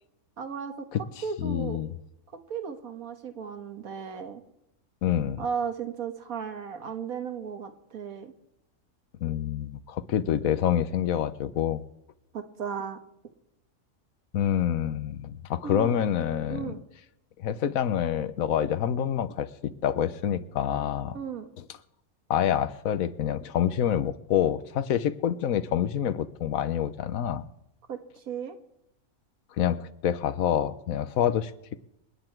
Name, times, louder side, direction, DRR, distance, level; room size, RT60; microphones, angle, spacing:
voice 1, 0.4-0.9 1.2-1.8 2.5-4.4 5.4-8.3 12.3-13.0 15.6-15.9 16.5-16.8 21.1-21.5 27.9-28.6, right 6 dB, 80° right, 7 dB, 1.8 m, -35 dB
voice 2, 1.4-1.9 5.0-5.4 9.2-11.8 14.3-16.7 17.4-21.2 22.3-27.4 29.6-31.5, left 10 dB, 75° left, 14 dB, 1.2 m, -27 dB
27.5 x 9.9 x 4.6 m, 0.81 s
omnidirectional pair, 1.5 m